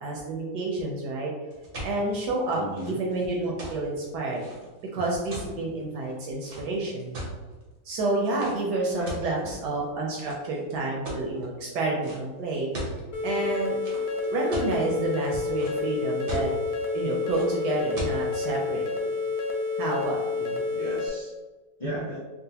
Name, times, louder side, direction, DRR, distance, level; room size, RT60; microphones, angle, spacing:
voice 1, 0.0-1.3 1.8-2.6 2.9-4.4 4.9-7.2 7.8-12.7 13.2-13.7 14.3-16.5 16.9-19.2 19.8-20.6, right 2 dB, 70° right, -2 dB, 1.0 m, -29 dB
sound 1, 1.5-7.6 8.3-8.6 9.1-9.8 10.2-10.6 11.0-11.4 12.0-12.2 12.5-13.0 13.8-14.7 15.2-15.9 16.3-16.7 17.3-17.5 18.0-18.2, right 1 dB, 55° right, 0.6 m, -37 dB
voice 2, 2.5-3.0 8.9-9.5 12.7-12.8 20.7-21.4 21.8-22.2, equal, 60° left, -9 dB, 0.3 m, -36 dB
sound 2, 13.1-21.1, left 4 dB, 80° left, 0.8 m, -29 dB
3.8 x 2.1 x 2.7 m, 1.3 s
omnidirectional pair, 2.1 m